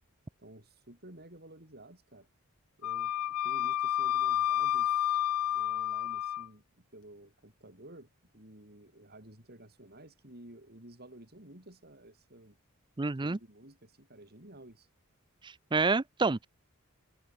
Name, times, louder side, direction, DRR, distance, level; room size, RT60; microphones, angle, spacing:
voice 1, 0.4-2.3 2.8-12.6 13.2-14.9, right 1 dB, 45° right, 6.5 m, -53 dB
Wind instrument woodwind instrument, 2.8-6.5, left 11 dB, 75° left, 0.3 m, -30 dB
voice 2, 13.0-13.4 15.4-16.5, right 3 dB, 20° right, 0.5 m, -29 dB
head